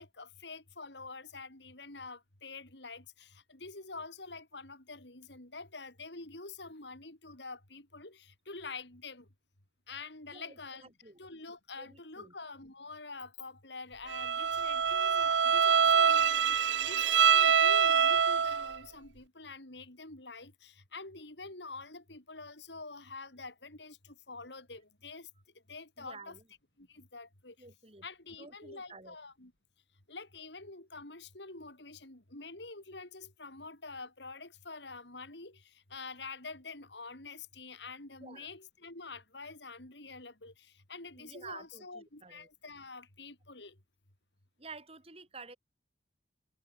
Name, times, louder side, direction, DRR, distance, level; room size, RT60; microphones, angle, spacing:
voice 1, 0.0-9.3 9.9-10.9 11.2-25.3 25.7-26.4 26.8-27.5 28.0-29.5 30.1-35.6 35.9-40.5 40.9-43.7, left 3 dB, 70° left, 4.3 m, -47 dB
voice 2, 10.3-11.2 11.8-12.3 26.0-26.4 27.6-28.1 28.4-29.2 38.2-38.5 41.2-42.5 44.6-45.6, right 4 dB, 35° right, 5.9 m, -50 dB
Bowed string instrument, 14.1-18.8, right 7 dB, 75° right, 0.7 m, -25 dB
head